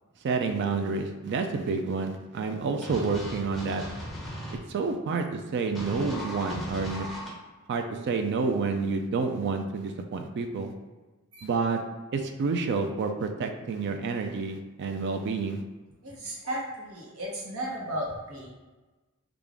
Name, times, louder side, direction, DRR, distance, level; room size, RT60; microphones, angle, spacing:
voice 1, 0.2-3.8 4.7-7.1 7.7-10.7 11.4-11.8 12.1-15.6, right 4 dB, 55° right, 5 dB, 0.3 m, -29 dB
sound 1, 2.8-4.6 5.8-7.3, equal, ahead, 0.9 m, -37 dB
voice 2, 16.0-18.5, right 1 dB, 80° right, -3 dB, 1.0 m, -35 dB
3.6 x 2.4 x 3.5 m, 1.2 s
head